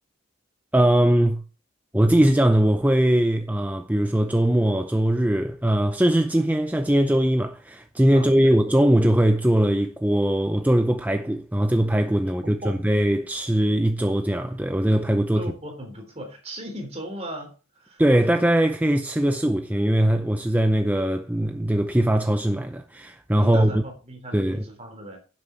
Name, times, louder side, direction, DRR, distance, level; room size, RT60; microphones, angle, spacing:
voice 1, 0.7-1.4 1.9-15.5 18.0-23.8 24.3-24.6, right 1 dB, 10° right, 0.6 m, -21 dB
voice 2, 8.1-8.6 12.2-12.8 15.4-18.0 23.4-25.2, right 1 dB, 30° right, 3.5 m, -37 dB
11.0 x 7.7 x 4.5 m
head